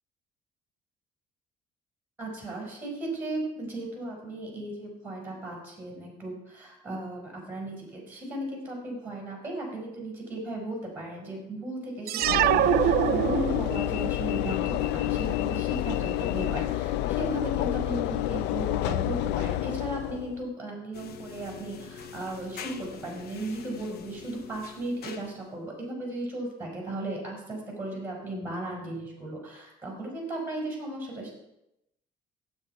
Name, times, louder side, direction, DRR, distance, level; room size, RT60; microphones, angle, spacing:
voice 1, 2.2-31.3, right 1 dB, 10° right, -1 dB, 5.7 m, -36 dB
sound 1, 12.1-13.9, right 14 dB, 65° right, 0.4 m, -24 dB
Train / Engine / Alarm, 12.2-20.5, left 14 dB, 90° left, 0.4 m, -29 dB
sound 2, 20.9-25.6, left 6 dB, 65° left, 1.1 m, -44 dB
16.5 x 8.4 x 4.7 m, 0.84 s
cardioid pair, 110°, 17 cm